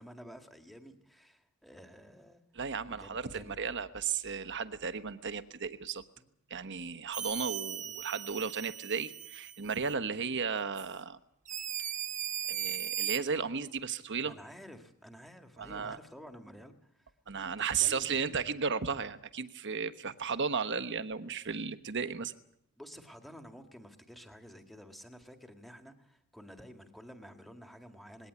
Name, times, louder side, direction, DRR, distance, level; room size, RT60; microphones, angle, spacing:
voice 1, 0.0-2.4 2.9-3.6 6.2-6.3 7.8-8.0 10.1-10.3 14.2-17.1 17.6-18.4 22.8-28.3, equal, ahead, 5 dB, 2.0 m, -51 dB
voice 2, 2.5-6.0 6.5-11.2 12.5-14.3 15.6-16.0 17.3-22.3, right 6 dB, 55° right, 11 dB, 1.2 m, -34 dB
sound 1, 7.1-9.9 10.7-10.9 11.5-13.2, right 10 dB, 35° right, 1.1 m, -37 dB
20.5 x 17.5 x 9.8 m, 0.79 s
head